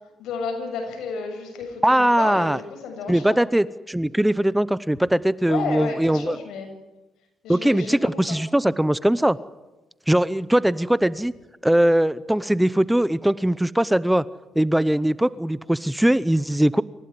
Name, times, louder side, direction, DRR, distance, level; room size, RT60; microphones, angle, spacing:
voice 1, 0.2-3.4 5.5-6.7 7.4-8.2, left 5 dB, 85° left, 4 dB, 7.4 m, -32 dB
voice 2, 1.8-2.6 3.1-6.4 7.5-9.4 10.1-11.3 11.6-14.2 14.6-16.8, right 1 dB, 5° right, 18 dB, 0.7 m, -20 dB
27.0 x 16.0 x 9.6 m, 1.1 s
cardioid pair, 90°, 0 cm